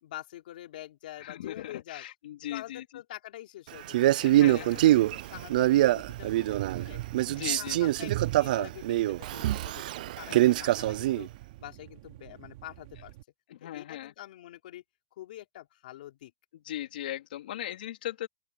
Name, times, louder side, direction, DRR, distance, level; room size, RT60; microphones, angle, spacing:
voice 1, 0.0-2.1 2.5-4.1 4.3-7.0 7.3-11.3 11.6-13.1 13.6-14.8 15.1-16.3, left 14 dB, 70° left, 3.9 m, -46 dB
voice 2, 1.2-2.8 4.2-4.8 7.3-7.9 10.3-10.7 13.5-14.1 16.6-18.3, left 12 dB, 85° left, 3.0 m, -38 dB
Male speech man speaking, 3.9-6.9 7.1-11.3, right 15 dB, 65° right, 0.3 m, -24 dB
sound 1, 4.4-13.2, right 16 dB, 50° right, 3.6 m, -42 dB
open air
supercardioid pair, 170°, 5 cm